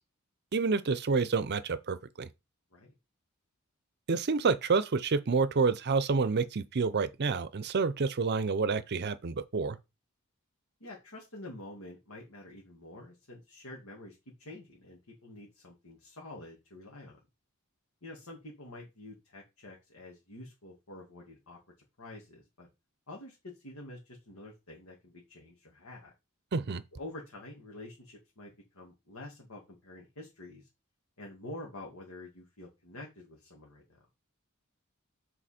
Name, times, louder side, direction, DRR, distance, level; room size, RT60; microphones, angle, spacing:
voice 1, 0.5-2.3 4.1-9.8 26.5-26.8, right 4 dB, 50° right, 0.6 m, -28 dB
voice 2, 10.8-17.2 18.0-21.6 22.0-22.7 23.1-26.1 26.9-30.7 31.2-34.0, left 1 dB, 90° left, 2.1 m, -48 dB
7.5 x 4.1 x 4.3 m
head